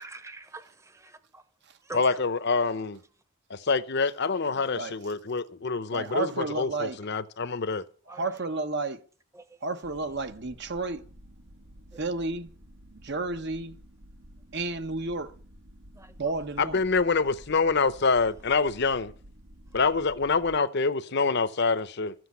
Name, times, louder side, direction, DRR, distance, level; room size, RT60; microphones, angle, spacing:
voice 1, 0.0-1.4 1.8-2.0 8.1-8.3 9.3-9.4 11.9-12.0 16.0-16.3, right 2 dB, 15° right, 1.0 m, -44 dB
voice 2, 1.9-3.0 3.5-7.8 16.6-19.1 19.7-22.1, left 4 dB, 50° left, 0.8 m, -26 dB
voice 3, 5.9-7.0 8.1-9.0 9.6-11.0 12.0-12.5 13.0-13.8 14.5-15.3 16.2-16.8, right 3 dB, 55° right, 1.0 m, -31 dB
sound 1, 9.8-20.6, equal, 80° right, 1.9 m, -51 dB
14.0 x 7.9 x 8.2 m
head